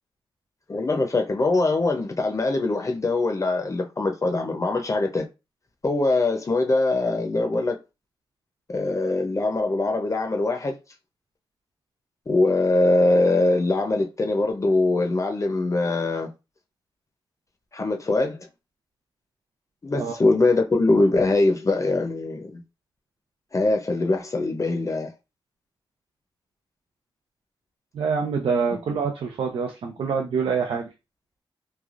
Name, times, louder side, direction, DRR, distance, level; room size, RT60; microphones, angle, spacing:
voice 1, 0.7-5.3 5.8-7.8 8.7-10.8 12.3-16.3 17.7-18.4 19.8-22.6 23.5-25.1, left 2 dB, 35° left, 0.6 m, -22 dB
voice 2, 27.9-30.9, right 5 dB, 85° right, 0.5 m, -26 dB
3.2 x 2.2 x 2.4 m
cardioid pair, 65°, 9 cm